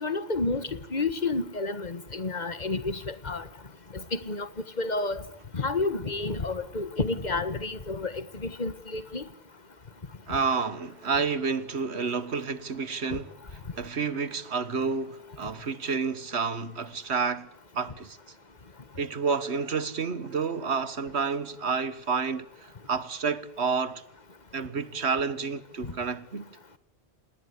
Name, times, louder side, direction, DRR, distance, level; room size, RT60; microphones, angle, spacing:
voice 1, 0.0-3.4 3.9-4.5 4.8-5.2 5.5-9.2 13.1-13.2, left 3 dB, 40° left, 1.7 m, -30 dB
voice 2, 10.3-13.3 13.8-17.5 17.7-18.2 19.0-24.0 24.5-26.4, right 5 dB, 85° right, 1.7 m, -29 dB
27.5 x 19.5 x 8.3 m
omnidirectional pair, 1.1 m